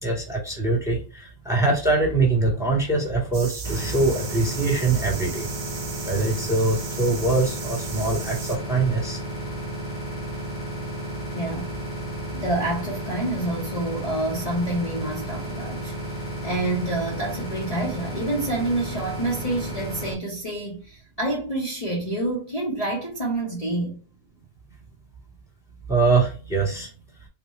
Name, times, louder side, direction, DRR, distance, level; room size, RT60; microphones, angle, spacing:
voice 1, 0.0-5.5 6.1-9.2 25.9-26.9, right 3 dB, 5° right, 1.1 m, -23 dB
sound 1, 3.3-8.6, right 6 dB, 55° right, 0.8 m, -37 dB
sound 2, 3.6-20.1, equal, 70° left, 1.7 m, -33 dB
voice 2, 11.3-11.7 12.3-15.9 16.4-24.0, right 1 dB, 35° left, 0.9 m, -28 dB
4.1 x 2.2 x 3.1 m
omnidirectional pair, 1.3 m